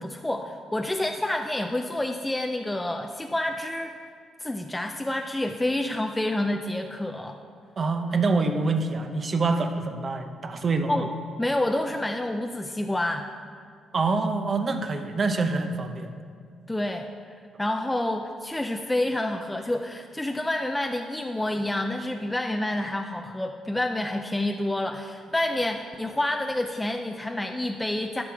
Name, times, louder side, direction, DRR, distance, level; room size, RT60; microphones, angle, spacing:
voice 1, 0.0-3.9 4.4-7.4 10.9-11.1 11.4-13.3 16.7-17.1 17.6-28.2, left 1 dB, 10° left, 4 dB, 0.4 m, -28 dB
voice 2, 7.8-11.0 13.9-16.1, right 3 dB, 40° right, 6 dB, 0.8 m, -26 dB
11.5 x 6.1 x 4.8 m, 2.2 s
cardioid pair, 90°, 0 cm